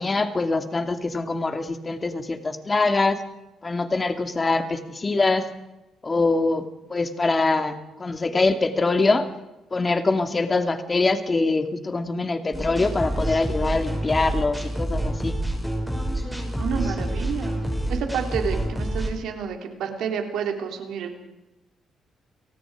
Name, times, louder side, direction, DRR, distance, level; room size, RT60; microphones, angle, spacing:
voice 1, 0.0-3.2 3.6-5.5 6.0-6.6 6.9-7.7 8.0-9.2 9.7-15.4, left 3 dB, 25° left, 8 dB, 2.4 m, -23 dB
sound 1, 12.5-19.1, right 1 dB, 5° left, 6.5 m, -28 dB
voice 2, 16.5-17.6 17.9-21.2, right 7 dB, 80° right, 4 dB, 3.7 m, -29 dB
29.5 x 19.0 x 5.0 m, 0.96 s
cardioid pair, 90°, 0 cm